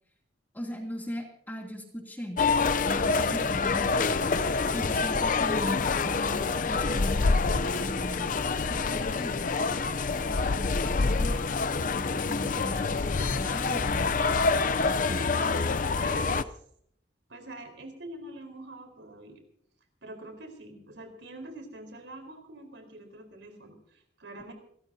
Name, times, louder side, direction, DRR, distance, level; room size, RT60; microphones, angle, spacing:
voice 1, 0.5-2.4 2.8-4.1 4.7-8.4 8.7-9.7 10.2-11.6 11.9-14.2 14.8-15.2, left 1 dB, 10° left, 1 dB, 2.7 m, -39 dB
sound 1, 2.4-16.4, left 4 dB, 45° left, 0.5 m, -27 dB
voice 2, 15.2-16.5 17.3-19.4 20.0-24.5, right 1 dB, 85° right, 5 dB, 4.3 m, -45 dB
29.0 x 14.0 x 2.8 m, 0.68 s
head